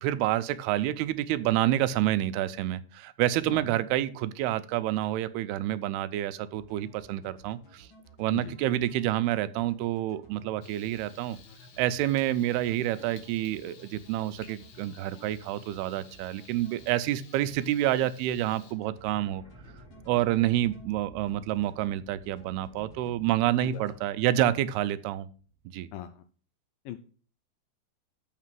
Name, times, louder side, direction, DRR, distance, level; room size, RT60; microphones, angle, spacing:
voice 1, 0.0-7.9 8.2-11.4 11.8-19.4 20.1-25.3 25.7-25.9, right 13 dB, 85° right, 2.5 m, -28 dB
sound 1, 6.5-20.9 21.3-21.9 22.2-23.1 23.4-24.0, left 1 dB, 40° left, 2.1 m, -54 dB
Frying (food), 10.6-18.7, left 6 dB, 65° left, 3.5 m, -55 dB
sound 2, 11.5-13.4 13.9-14.0 15.5-15.9 16.1-17.6 17.8-17.9 18.1-18.2 18.5-18.6 19.0-25.8, right 2 dB, 20° left, 4.5 m, -55 dB
voice 2, 25.9-26.2 26.9-27.0, left 12 dB, 80° left, 2.0 m, -39 dB
7.4 x 5.9 x 7.5 m
omnidirectional pair, 4.5 m